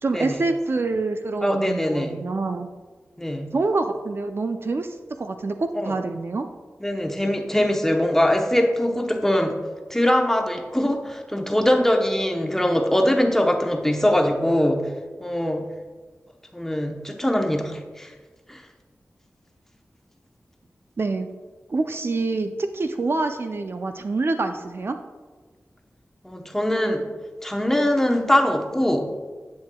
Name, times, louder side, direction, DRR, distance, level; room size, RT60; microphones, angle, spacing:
voice 1, 0.0-2.7 3.5-6.5 21.0-21.3 21.7-25.0, right 3 dB, 50° right, 7 dB, 0.4 m, -26 dB
voice 2, 1.4-2.2 3.2-3.5 5.7-5.9 6.8-9.6 9.9-14.9 15.2-15.7 16.5-18.1 18.5-18.6 26.2-27.0 27.4-29.1, left 1 dB, 10° left, 3 dB, 0.8 m, -22 dB
10.5 x 7.5 x 2.2 m, 1.4 s
wide cardioid pair, 70°, 5 cm